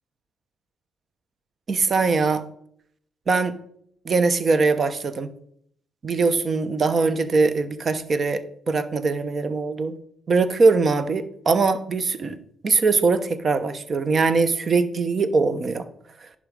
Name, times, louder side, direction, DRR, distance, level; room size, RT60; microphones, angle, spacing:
voice 1, 1.7-2.4 3.3-3.5 4.0-5.3 6.0-9.9 10.3-12.3 12.6-15.8, right 4 dB, 45° right, 12 dB, 1.0 m, -21 dB
11.0 x 5.0 x 5.3 m, 0.67 s
cardioid pair, 90°, 0 cm